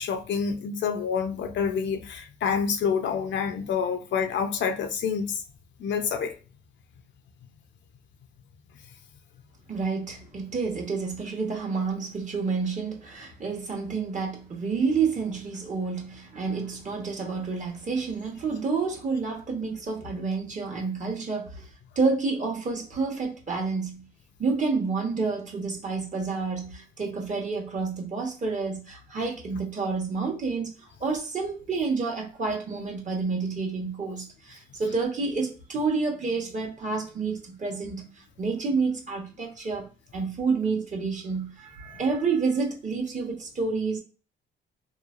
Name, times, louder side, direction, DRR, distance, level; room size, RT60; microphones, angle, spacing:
voice 1, 0.0-5.4 5.8-6.3, left 6 dB, 65° left, 0.5 m, -27 dB
voice 2, 9.7-21.7 22.0-24.1 24.4-44.0, right 4 dB, 40° right, 1.0 m, -29 dB
3.1 x 2.0 x 2.4 m
cardioid pair, 90°, 20 cm